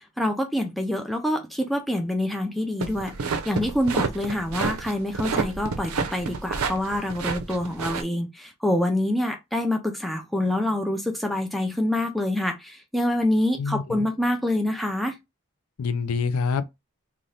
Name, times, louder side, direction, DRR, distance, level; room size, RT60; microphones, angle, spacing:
voice 1, 0.0-15.2, left 1 dB, ahead, 0.4 m, -26 dB
sound 1, 2.8-8.0, right 5 dB, 85° right, 0.5 m, -29 dB
voice 2, 13.6-14.1 15.8-16.6, left 5 dB, 85° left, 0.4 m, -26 dB
2.6 x 2.3 x 3.2 m
head